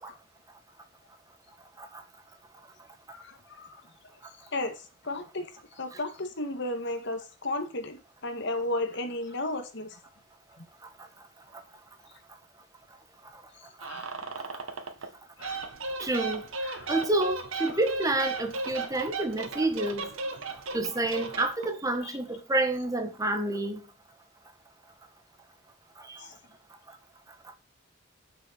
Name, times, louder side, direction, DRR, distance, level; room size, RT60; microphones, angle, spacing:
voice 1, 3.1-3.8 4.5-5.5 5.8-10.0 13.8-14.1 15.4-15.7 16.6-16.9 22.0-22.1 26.2-26.4, left 2 dB, 60° left, 2.1 m, -34 dB
sound 1, 13.8-15.1 15.4-21.8, right 3 dB, 80° right, 1.9 m, -36 dB
voice 2, 16.0-16.4 16.9-20.1 20.7-23.8 26.1-26.2, right 2 dB, 15° right, 1.8 m, -28 dB
10.0 x 6.9 x 6.1 m
head